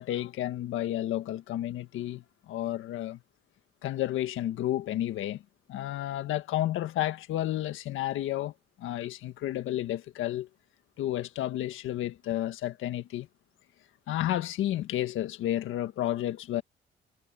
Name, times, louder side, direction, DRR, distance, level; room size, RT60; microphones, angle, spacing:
voice 1, 0.0-3.2 3.8-5.4 5.7-8.5 8.8-10.5 11.0-13.3 14.1-16.6, left 13 dB, 85° left, 1.7 m, -31 dB
cardioid pair, 90°, 20 cm